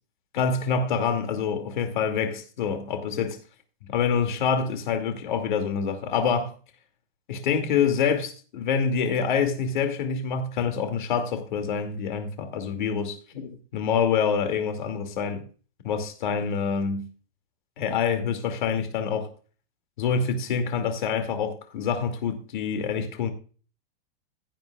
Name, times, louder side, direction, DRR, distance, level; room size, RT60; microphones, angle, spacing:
voice 1, 0.3-3.4 3.9-6.5 7.3-15.4 15.8-17.0 17.8-19.3 20.0-23.3, left 6 dB, 50° left, 2.4 m, -26 dB
16.0 x 9.2 x 2.4 m
supercardioid pair, 180°, 30 cm